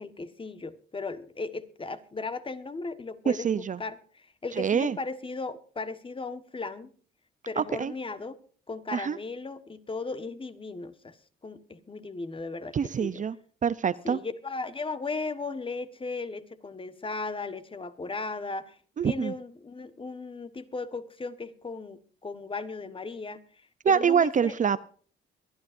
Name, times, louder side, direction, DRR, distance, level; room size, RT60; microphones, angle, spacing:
voice 1, 0.0-3.5 3.8-6.9 7.5-8.4 8.7-11.2 11.4-13.2 14.0-18.8 19.0-23.4 23.9-24.5, left 3 dB, 25° left, 11 dB, 1.4 m, -36 dB
voice 2, 3.3-3.8 4.6-5.0 7.6-7.9 8.9-9.2 12.7-13.4 13.6-14.2 19.0-19.3 23.8-24.8, right 7 dB, 40° right, 16 dB, 0.6 m, -25 dB
23.0 x 12.0 x 2.6 m, 0.43 s
cardioid pair, 90°, 20 cm